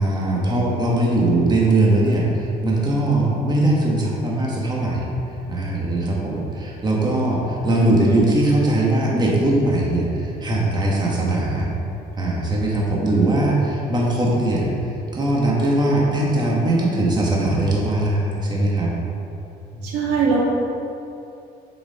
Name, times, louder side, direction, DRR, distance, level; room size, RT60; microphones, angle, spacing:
voice 1, 0.0-5.0 5.5-11.7 12.2-14.7 15.1-18.9 19.7-20.1, right 1 dB, 25° right, -3 dB, 1.6 m, -20 dB
voice 2, 19.8-20.4, right 5 dB, 90° right, -4 dB, 1.8 m, -20 dB
7.4 x 5.0 x 5.0 m, 2.8 s
cardioid pair, 110°, 17 cm